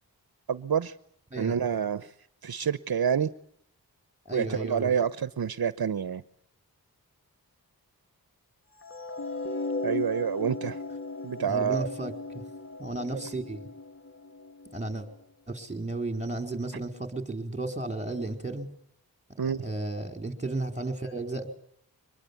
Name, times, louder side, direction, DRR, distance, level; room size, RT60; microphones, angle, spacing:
voice 1, 0.5-0.9 1.4-2.1 2.4-3.3 4.3-6.2 9.8-10.8 11.2-11.9 19.4-19.6, right 7 dB, 70° right, 1.0 m, -28 dB
voice 2, 4.2-4.9 11.4-12.4 12.8-13.6 14.7-15.1 15.5-18.7 19.6-21.5, right 2 dB, 20° right, 4.7 m, -33 dB
sound 1, 8.8-15.0, left 2 dB, 35° left, 2.3 m, -37 dB
24.5 x 21.0 x 8.6 m
cardioid pair, 50°, 38 cm